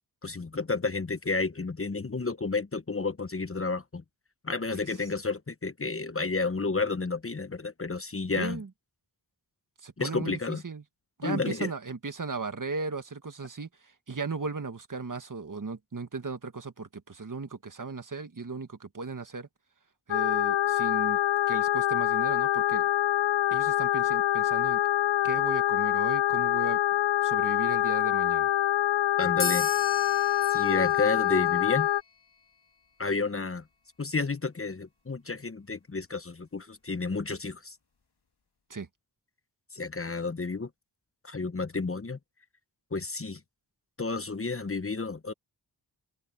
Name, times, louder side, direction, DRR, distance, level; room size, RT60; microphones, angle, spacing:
voice 1, 0.2-4.0 4.4-8.6 10.0-10.6 11.2-11.7 29.2-29.7 30.5-31.9 33.0-33.6 34.0-37.8 39.7-40.7 41.2-42.2 42.9-43.4 44.0-45.3, left 3 dB, 30° left, 1.1 m, -31 dB
voice 2, 8.4-8.7 9.8-10.8 11.2-19.5 20.1-21.2 21.5-22.9 23.5-24.8 25.2-26.8 27.2-28.5 38.7-38.9, right 4 dB, 45° right, 1.8 m, -36 dB
sound 1, 20.1-32.0, left 13 dB, 90° left, 0.5 m, -25 dB
sound 2, 29.4-32.4, left 4 dB, 65° left, 3.0 m, -37 dB
cardioid pair, 55°, 43 cm